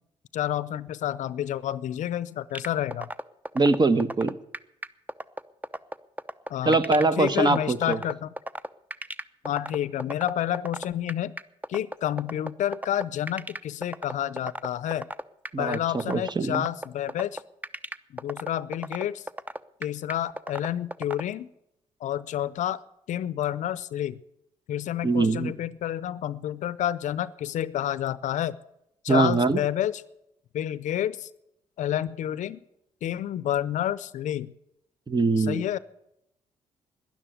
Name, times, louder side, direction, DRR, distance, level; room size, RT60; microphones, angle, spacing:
voice 1, 0.3-3.1 6.5-8.3 9.4-11.4 11.7-15.1 15.6-17.4 18.1-19.2 19.8-21.5 22.0-22.8 23.1-24.2 24.7-28.6 29.0-30.0 30.5-31.3 31.8-32.6 33.0-34.5 35.4-35.8, left 11 dB, 70° left, 18 dB, 0.6 m, -29 dB
sound 1, 2.5-21.2, right 1 dB, 10° right, 0.7 m, -34 dB
voice 2, 3.5-4.3 6.7-8.0 15.5-15.8 16.1-16.6 25.0-25.5 29.1-29.6 35.1-35.6, right 3 dB, 35° right, 12 dB, 1.1 m, -22 dB
12.5 x 10.5 x 9.1 m, 0.82 s
supercardioid pair, 55°, 13 cm